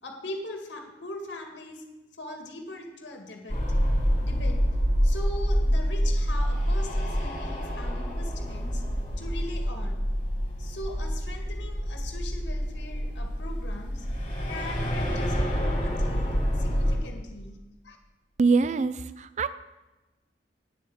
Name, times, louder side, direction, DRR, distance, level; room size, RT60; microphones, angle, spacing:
voice 1, 0.0-1.9 2.2-3.6 4.2-4.7 5.0-10.1 10.6-14.1 14.5-17.6 17.8-18.0, left 1 dB, 70° left, 3 dB, 1.9 m, -40 dB
sound 1, 3.5-17.0, equal, 35° left, 3.2 m, -27 dB
voice 2, 18.4-19.5, right 4 dB, 40° right, 14 dB, 0.3 m, -24 dB
9.2 x 7.5 x 7.6 m, 1.1 s
head